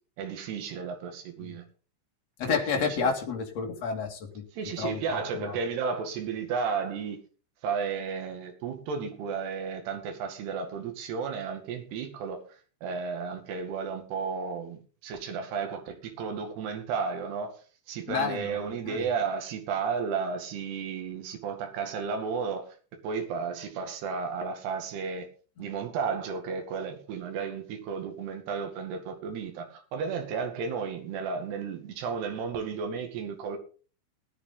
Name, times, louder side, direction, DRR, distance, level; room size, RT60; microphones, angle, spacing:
voice 1, 0.2-1.6 2.5-3.1 4.5-7.2 7.6-12.4 12.8-17.5 17.9-22.7 23.0-25.3 25.6-33.6, right 5 dB, 60° right, 4.0 m, -33 dB
voice 2, 2.4-4.4 4.8-5.5 18.1-18.6 18.9-19.0, left 5 dB, 45° left, 2.6 m, -30 dB
18.5 x 9.9 x 3.9 m
omnidirectional pair, 5.7 m